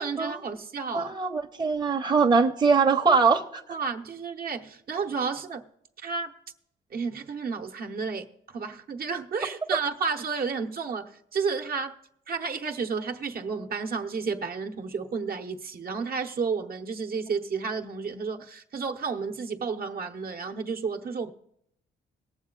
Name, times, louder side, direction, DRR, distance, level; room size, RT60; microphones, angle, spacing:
voice 1, 0.0-1.1 3.7-5.7 6.0-6.3 6.9-11.9 12.3-21.3, right 5 dB, 50° right, 0.9 m, -31 dB
voice 2, 0.9-3.6, right 5 dB, 20° right, 0.8 m, -22 dB
19.0 x 7.1 x 3.8 m
cardioid pair, 90°, 20 cm